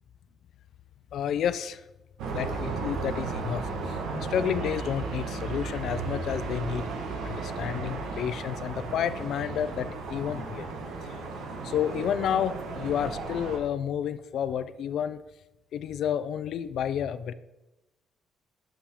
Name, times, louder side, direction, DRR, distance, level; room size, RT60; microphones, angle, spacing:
voice 1, 1.1-1.8 2.3-6.9 7.2-10.7 11.0-11.2 11.6-15.2 15.7-17.3, left 9 dB, 75° left, 14 dB, 0.3 m, -30 dB
sound 1, 2.2-13.6, right 4 dB, 90° right, 1.2 m, -34 dB
7.0 x 5.7 x 3.6 m, 0.98 s
cardioid pair, 90°, 0 cm